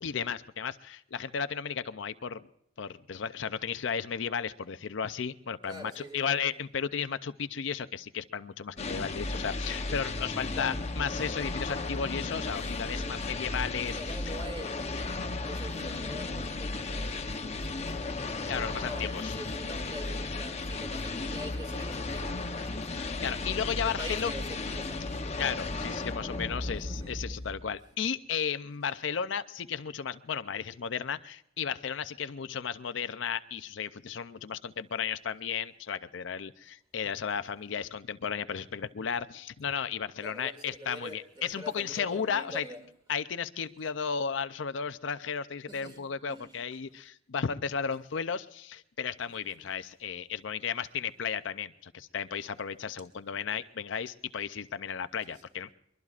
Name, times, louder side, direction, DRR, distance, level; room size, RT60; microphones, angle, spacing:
voice 1, 0.0-2.4 2.8-14.0 18.5-19.3 23.2-24.3 24.7-24.8 25.4-42.6 43.1-55.7, left 7 dB, 70° left, 0.5 m, -34 dB
voice 2, 5.6-6.5 10.5-10.8 12.6-13.4 13.9-18.3 18.6-25.2 25.9-26.2 26.8-27.6 40.2-42.8 45.7-46.5 49.6-49.7 55.3-55.4, equal, 25° right, 2.5 m, -45 dB
sound 1, 8.8-27.8, left 3 dB, 35° left, 0.9 m, -35 dB
22.5 x 22.5 x 2.4 m
head